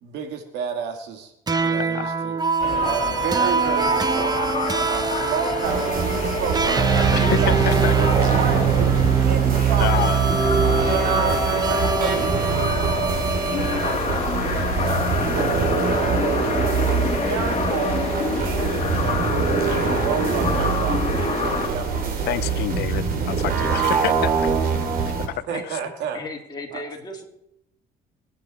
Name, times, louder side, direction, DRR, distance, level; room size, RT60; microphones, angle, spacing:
voice 1, 0.0-1.3 1.6-2.3 2.8-4.3 4.9-7.1 7.4-7.6 8.3-9.9 10.6-11.4 11.6-13.2 13.7-16.0 16.4-16.6 16.9-18.0 18.4-22.4 25.5-26.2 26.7-26.8, right 7 dB, 85° right, 5 dB, 2.5 m, -31 dB
sound 1, 1.5-14.0, right 6 dB, 25° right, 1.1 m, -23 dB
voice 2, 1.8-2.1 7.1-8.1 9.8-10.2 22.3-24.3 25.4-25.8, left 14 dB, 75° left, 16 dB, 0.6 m, -28 dB
sound 2, 2.6-21.7, left 4 dB, 40° left, 2.3 m, -28 dB
sound 3, 5.6-25.3, right 5 dB, 60° right, 3.0 m, -24 dB
voice 3, 26.1-27.3, left 2 dB, 25° left, 0 dB, 3.3 m, -35 dB
23.0 x 9.8 x 4.4 m, 0.81 s
cardioid pair, 110°, 17 cm